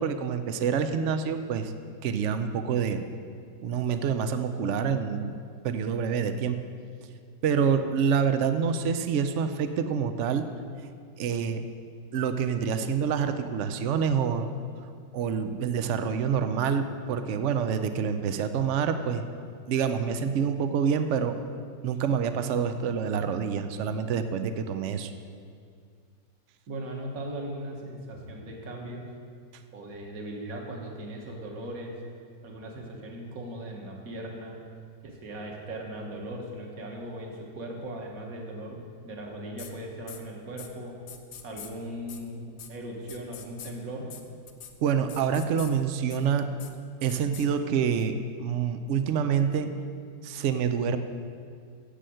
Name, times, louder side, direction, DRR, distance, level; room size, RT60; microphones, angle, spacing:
voice 1, 0.0-1.7 2.0-3.0 3.6-5.3 5.6-6.6 7.4-10.5 11.2-11.6 12.1-14.5 15.1-19.2 19.7-21.4 21.8-25.1 44.8-46.5 47.0-49.7 50.2-51.0, right 7 dB, 80° right, 9 dB, 0.6 m, -27 dB
voice 2, 26.7-29.1 29.7-32.0 32.4-34.6 35.0-40.9 41.4-44.0, right 1 dB, 50° right, 0 dB, 1.9 m, -38 dB
sound 1, 39.6-39.7 40.1-40.2 40.6-40.7 41.1-41.7 42.1-42.2 42.6-42.7 43.1-43.7 44.1-44.2 44.5-44.7 45.1-45.7 46.1-46.2 46.6-46.7 47.1-47.5, left 9 dB, 80° left, 1.6 m, -43 dB
10.0 x 7.8 x 7.7 m, 2.2 s
omnidirectional pair, 2.0 m